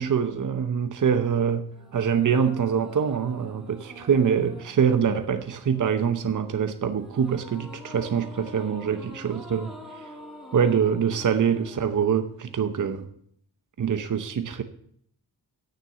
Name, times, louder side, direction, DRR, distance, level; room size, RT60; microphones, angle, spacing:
voice 1, 0.0-1.7 1.9-9.7 10.5-13.1 13.8-14.6, right 7 dB, 50° right, 8 dB, 0.8 m, -24 dB
sound 1, 1.7-13.0, equal, ahead, 1.6 m, -46 dB
9.5 x 6.7 x 6.7 m, 0.65 s
wide cardioid pair, 145°, 40 cm